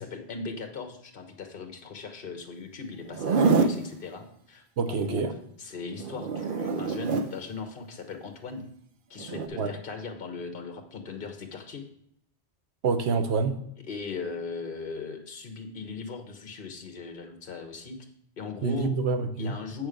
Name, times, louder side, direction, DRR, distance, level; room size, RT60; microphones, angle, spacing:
voice 1, 0.0-4.6 5.0-5.2 5.6-8.7 9.1-11.8 13.9-18.1 18.4-18.9 19.4-19.9, left 4 dB, 60° left, 6 dB, 1.2 m, -38 dB
Zipper (clothing), 3.1-3.8 6.0-7.3 9.2-9.5, right 4 dB, 60° right, 0.8 m, -25 dB
voice 2, 4.8-5.3 9.6-9.7 12.8-13.6 18.6-19.5, right 5 dB, 90° right, 8 dB, 1.1 m, -27 dB
7.5 x 6.3 x 5.0 m, 0.70 s
omnidirectional pair, 1.1 m